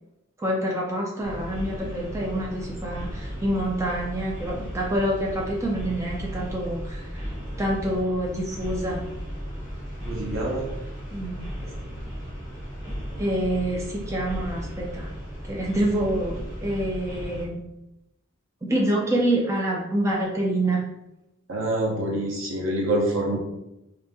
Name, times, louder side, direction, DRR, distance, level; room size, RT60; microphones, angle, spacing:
voice 1, 0.4-7.3 7.6-9.0 11.1-11.5 12.9-15.1 15.4-17.6 18.6-20.8, right 1 dB, 15° right, -3 dB, 0.4 m, -27 dB
sound 1, 1.2-17.5, equal, 35° right, 1.2 m, -35 dB
voice 2, 10.0-10.7 21.5-23.4, right 1 dB, 75° right, -1 dB, 0.9 m, -26 dB
2.8 x 2.6 x 3.5 m, 0.92 s
head